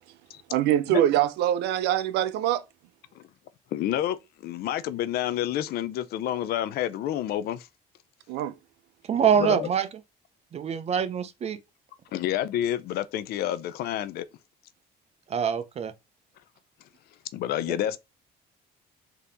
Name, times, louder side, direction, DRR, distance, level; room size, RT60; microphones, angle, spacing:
voice 1, 0.5-2.6 8.3-8.5, right 12 dB, 85° right, 0.5 m, -24 dB
voice 2, 3.7-4.2 4.4-7.7 9.4-9.7 12.1-14.3 17.3-18.0, left 12 dB, 70° left, 0.4 m, -29 dB
voice 3, 9.1-9.9 10.5-11.6 15.3-15.9, right 8 dB, 40° right, 0.6 m, -24 dB
3.4 x 2.9 x 3.8 m
cardioid pair, 110°, 17 cm